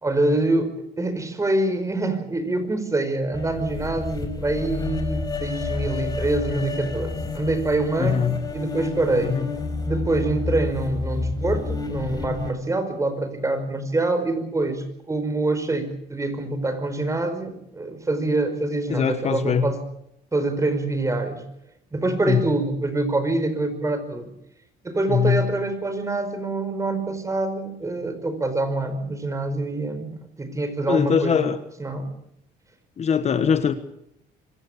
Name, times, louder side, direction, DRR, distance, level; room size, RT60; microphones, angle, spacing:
voice 1, 0.0-9.4 9.8-19.8 20.3-21.4 21.9-24.3 24.8-31.5 31.8-32.1, right 2 dB, 20° right, 9 dB, 4.8 m, -25 dB
sound 1, 3.3-12.5, left 4 dB, 20° left, 4.8 m, -30 dB
voice 2, 8.0-8.4 9.2-9.5 18.9-19.7 22.2-22.4 25.1-25.5 30.9-31.6 33.0-33.7, left 7 dB, 40° left, 11 dB, 1.4 m, -22 dB
25.5 x 15.5 x 8.4 m, 0.78 s
cardioid pair, 110°, 17 cm